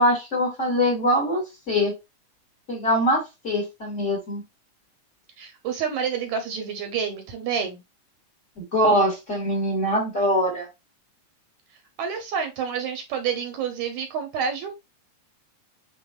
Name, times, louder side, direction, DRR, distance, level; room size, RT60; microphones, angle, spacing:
voice 1, 0.0-1.9 2.7-4.4 8.7-10.7, equal, 25° left, 2.2 m, -23 dB
voice 2, 5.4-7.8 12.0-14.7, right 7 dB, 70° right, 2.1 m, -28 dB
6.5 x 3.4 x 2.3 m
omnidirectional pair, 3.6 m